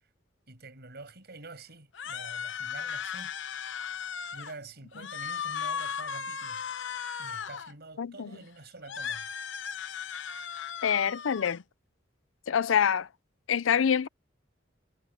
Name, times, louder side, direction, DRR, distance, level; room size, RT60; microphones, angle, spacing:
voice 1, 0.5-3.3 3.9-4.0 4.3-6.6 7.2-9.3, right 3 dB, 55° right, 6.5 m, -47 dB
sound 1, 1.9-4.6 4.9-7.7 8.8-11.6, left 7 dB, 65° left, 0.9 m, -36 dB
voice 2, 8.0-8.3 10.8-11.6 12.5-13.1 13.5-14.1, left 8 dB, 90° left, 0.5 m, -26 dB
head